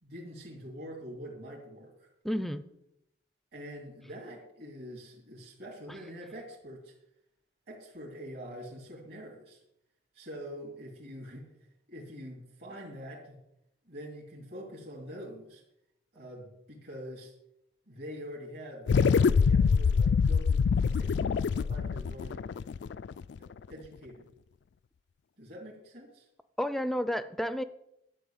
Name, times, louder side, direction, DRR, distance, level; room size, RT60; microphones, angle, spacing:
voice 1, 0.0-2.1 3.5-6.9 7.7-9.6 10.1-11.5 11.9-13.4 13.8-15.6 16.1-17.3 17.9-22.5 23.4-24.3 25.4-26.3, equal, 55° right, -2 dB, 2.7 m, -45 dB
voice 2, 2.2-2.6 26.6-27.6, equal, ahead, 12 dB, 0.5 m, -31 dB
sound 1, 18.9-23.5, left 5 dB, 60° left, 0.3 m, -25 dB
11.5 x 5.6 x 8.7 m, 0.81 s
head